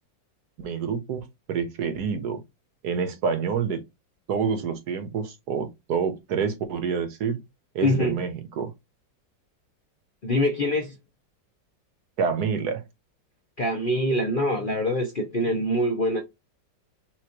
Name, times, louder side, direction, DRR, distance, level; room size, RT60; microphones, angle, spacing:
voice 1, 0.6-2.4 2.8-3.8 4.3-7.4 7.7-8.7 12.2-12.8, right 6 dB, 65° right, 1.3 m, -27 dB
voice 2, 7.8-8.2 10.2-11.0 13.6-16.2, left 1 dB, 45° left, 0.7 m, -24 dB
5.9 x 2.5 x 2.9 m
omnidirectional pair, 2.0 m